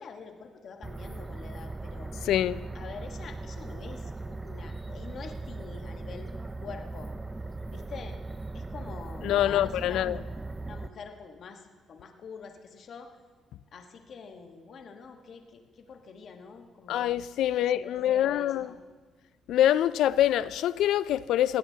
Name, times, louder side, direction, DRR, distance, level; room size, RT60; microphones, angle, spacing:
voice 1, 0.0-2.3 2.7-6.3 6.6-7.1 7.6-8.2 8.5-10.1 10.6-13.1 13.7-17.1 17.6-18.8, left 5 dB, 60° left, 1.3 m, -46 dB
sound 1, 0.8-10.9, right 3 dB, 20° right, 0.5 m, -39 dB
voice 2, 2.3-2.6 9.2-10.2 16.9-18.7 19.5-21.6, left 12 dB, 85° left, 0.3 m, -25 dB
19.5 x 15.5 x 2.8 m
cardioid pair, 90°, 0 cm